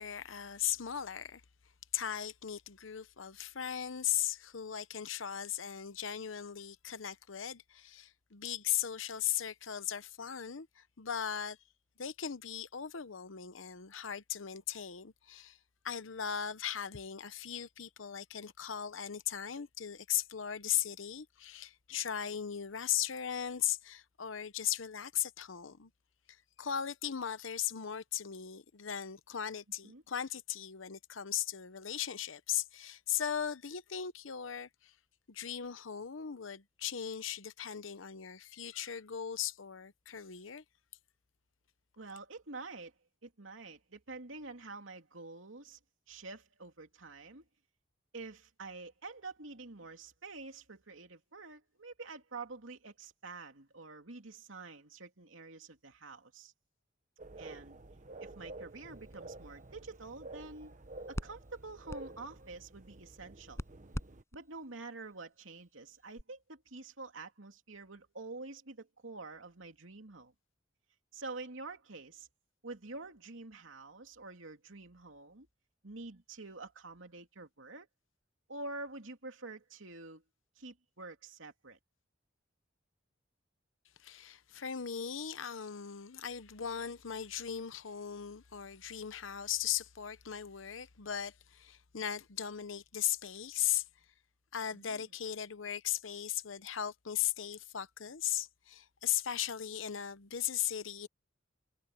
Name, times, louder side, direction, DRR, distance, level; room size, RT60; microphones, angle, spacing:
voice 1, 0.0-1.4 1.9-11.6 12.0-15.6 15.8-25.9 26.3-34.9 35.3-40.6 84.0-93.9 94.5-101.1, left 10 dB, 85° left, 0.9 m, -38 dB
voice 2, 42.0-42.9 43.2-45.8 46.1-47.4 48.1-56.5 57.4-57.8 58.2-60.8 61.1-63.6 64.3-70.3 71.1-72.3 72.6-75.5 75.8-77.9 78.5-80.2 80.6-81.8 94.7-95.0, right 3 dB, 90° right, 2.8 m, -47 dB
sound 1, 57.2-64.2, right 2 dB, 40° right, 1.0 m, -50 dB
sound 2, 58.7-66.2, equal, 15° left, 5.9 m, -48 dB
head